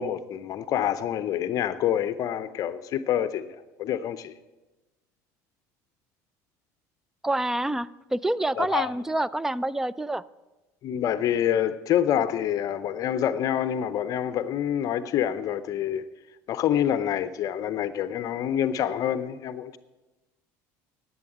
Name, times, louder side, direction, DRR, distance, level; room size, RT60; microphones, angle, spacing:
voice 1, 0.0-4.3 8.6-8.9 10.8-16.0 16.5-19.8, left 10 dB, 50° left, 0.6 m, -27 dB
voice 2, 7.2-10.2, right 1 dB, 5° right, 0.4 m, -27 dB
11.0 x 8.6 x 7.9 m
supercardioid pair, 105°, 8 cm